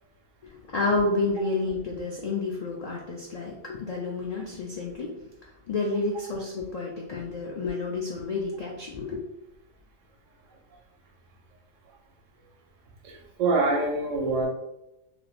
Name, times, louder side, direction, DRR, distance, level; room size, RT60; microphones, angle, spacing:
voice 1, 0.4-9.2, left 3 dB, 90° left, -2 dB, 0.3 m, -30 dB
voice 2, 13.0-14.5, right 3 dB, 85° right, 0 dB, 1.1 m, -25 dB
3.3 x 2.5 x 2.4 m, 0.89 s
omnidirectional pair, 1.3 m